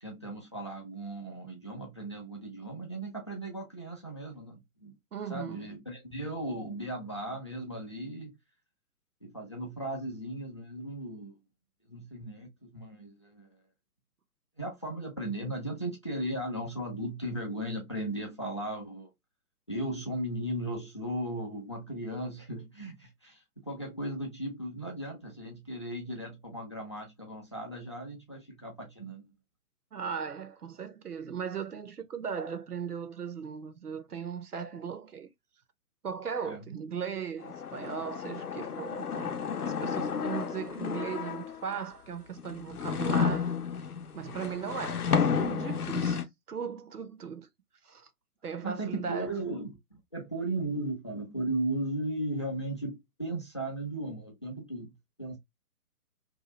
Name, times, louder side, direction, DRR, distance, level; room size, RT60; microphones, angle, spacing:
voice 1, 0.0-4.9 5.3-8.3 9.2-11.3 11.9-13.5 14.6-19.1 19.7-29.3 36.4-36.7 48.6-54.9 55.2-55.4, right 1 dB, 20° left, 0.4 m, -36 dB
voice 2, 5.1-5.7 29.9-35.3 36.0-39.3 39.6-43.6 44.1-47.5 47.8-48.1 48.4-49.3, right 7 dB, 85° right, 0.7 m, -38 dB
sound 1, 37.4-41.8 42.4-46.2, left 6 dB, 80° left, 0.6 m, -31 dB
2.7 x 2.3 x 2.9 m
figure-of-eight pair, 130°, 45 cm